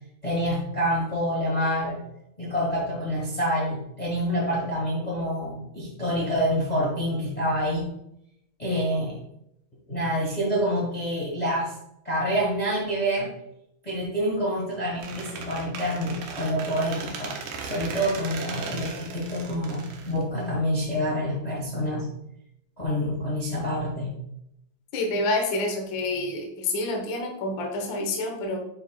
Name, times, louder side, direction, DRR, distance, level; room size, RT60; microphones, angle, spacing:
voice 1, 0.2-2.0 2.4-7.9 8.6-9.2 9.9-11.7 12.0-13.3 13.8-17.3 17.6-22.1 22.8-24.2, equal, 35° left, -4 dB, 0.6 m, -27 dB
Squeak, 15.0-20.8, right 5 dB, 75° right, 2.3 m, -37 dB
voice 2, 24.9-28.6, left 2 dB, 65° left, 2 dB, 1.2 m, -28 dB
8.7 x 4.7 x 2.3 m, 0.78 s
omnidirectional pair, 3.7 m